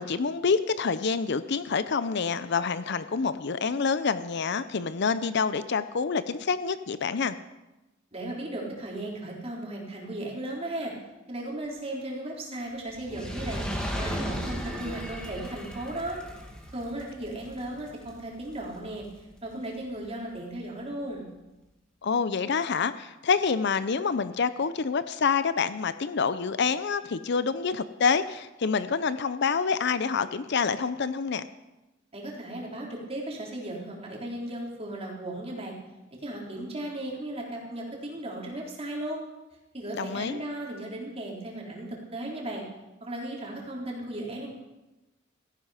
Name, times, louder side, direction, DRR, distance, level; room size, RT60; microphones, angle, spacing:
voice 1, 0.0-7.4 22.0-31.4 40.0-40.4, left 5 dB, 55° left, 13 dB, 0.6 m, -27 dB
voice 2, 8.1-10.9 11.3-13.6 14.0-16.2 16.7-21.3 32.1-35.7 36.2-39.2 39.7-42.6 43.0-44.5, right 1 dB, 30° right, -2 dB, 3.7 m, -36 dB
Fire, 12.9-19.4 20.1-20.2, equal, 5° left, 2.0 m, -36 dB
16.5 x 14.5 x 5.0 m, 1.0 s
head